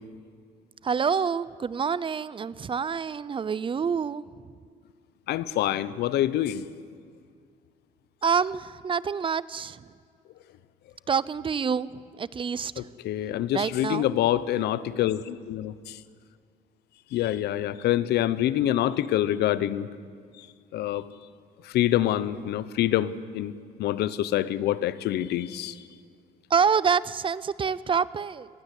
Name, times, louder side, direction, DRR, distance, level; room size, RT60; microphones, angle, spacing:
voice 1, 0.8-4.3 8.2-9.8 11.1-12.9 13.5-14.1 26.5-28.5, right 6 dB, 30° right, 0.7 m, -27 dB
voice 2, 5.3-6.6 12.8-16.0 17.1-19.9 20.7-21.1 21.6-23.5 23.8-25.7, left 12 dB, 75° left, 1.0 m, -26 dB
25.0 x 20.0 x 8.4 m
cardioid pair, 110°, 17 cm